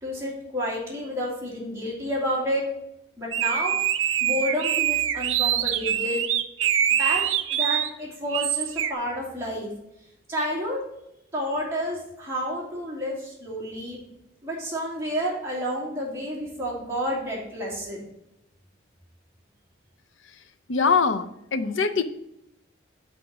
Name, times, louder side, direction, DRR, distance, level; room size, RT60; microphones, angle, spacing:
voice 1, 0.0-2.6 3.2-3.7 4.2-6.3 7.0-7.2 7.5-9.7 10.3-10.8 11.3-14.0 14.4-18.0, equal, 15° right, -5 dB, 2.4 m, -30 dB
sound 1, 3.3-7.9 8.3-8.9, right 10 dB, 85° right, 0.5 m, -24 dB
voice 2, 20.7-22.0, left 5 dB, 80° left, 11 dB, 0.6 m, -23 dB
6.1 x 4.9 x 5.9 m, 0.85 s
head